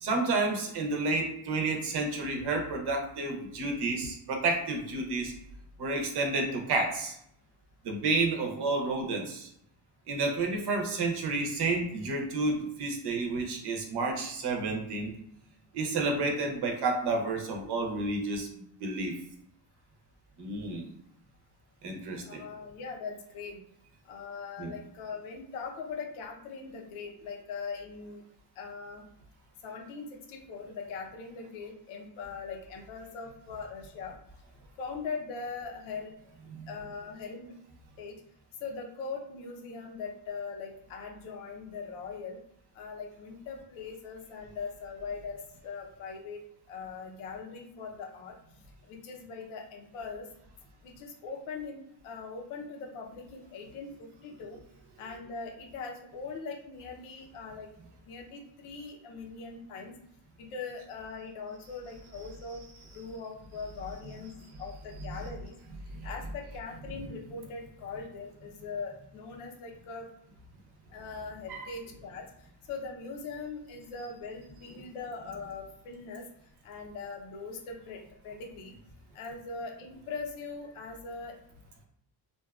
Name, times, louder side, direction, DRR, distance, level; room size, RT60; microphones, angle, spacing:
voice 1, 0.0-5.3 5.8-7.2 7.8-9.5 10.1-15.1 15.7-18.5 18.8-19.1 20.4-20.9 21.8-22.5 24.6-24.7 36.5-36.7 55.0-55.2 62.5-62.9 63.8-64.6 65.0-65.3 65.9-66.3 66.9-67.0 71.5-71.7, right 3 dB, 55° right, 2 dB, 0.7 m, -31 dB
voice 2, 22.3-23.6 24.1-28.2 28.6-29.0 29.6-34.2 34.8-36.1 36.7-37.5 38.0-38.2 38.6-42.4 42.7-46.4 46.7-48.3 48.8-50.3 50.8-54.6 55.0-57.7 58.0-59.9 60.4-62.6 62.9-64.3 64.6-65.6 66.0-70.1 70.9-72.3 72.7-76.2 76.6-78.8 79.1-81.3, left 4 dB, 85° left, 1 dB, 0.7 m, -41 dB
2.5 x 2.3 x 2.3 m, 0.73 s
cardioid pair, 115°, 48 cm